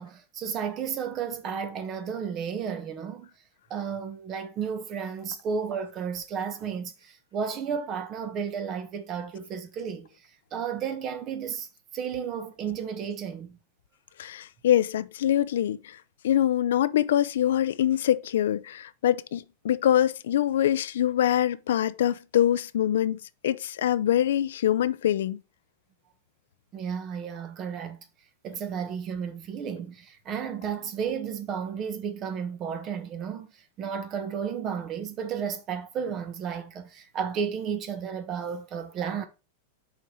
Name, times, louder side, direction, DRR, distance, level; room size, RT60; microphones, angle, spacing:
voice 1, 0.0-3.3 3.7-10.1 10.5-13.6 26.7-28.0 28.4-39.3, right 7 dB, 30° right, 1.2 m, -33 dB
voice 2, 14.2-16.0 16.2-25.4, left 11 dB, 85° left, 0.5 m, -24 dB
5.6 x 4.5 x 4.9 m
supercardioid pair, 150°, 0 cm